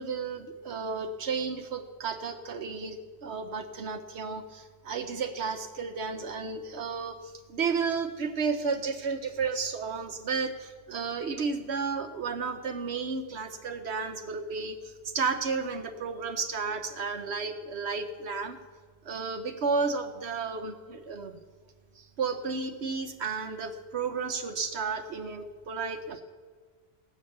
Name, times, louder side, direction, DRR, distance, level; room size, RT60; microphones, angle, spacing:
voice 1, 0.0-18.6 19.0-21.4 22.0-26.2, right 5 dB, 85° right, 6 dB, 1.1 m, -32 dB
16.0 x 8.6 x 6.6 m, 1.5 s
omnidirectional pair, 1.1 m